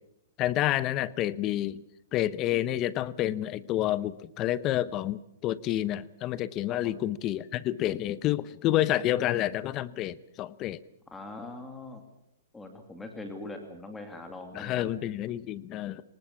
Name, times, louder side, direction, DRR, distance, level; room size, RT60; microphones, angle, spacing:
voice 1, 0.4-1.8 2.1-10.8 14.5-16.0, left 13 dB, 25° left, 17 dB, 0.8 m, -29 dB
voice 2, 11.1-12.0 12.5-14.8, left 2 dB, 5° left, 5 dB, 2.3 m, -42 dB
24.5 x 19.5 x 7.1 m, 0.76 s
hypercardioid pair, 160°, 0 cm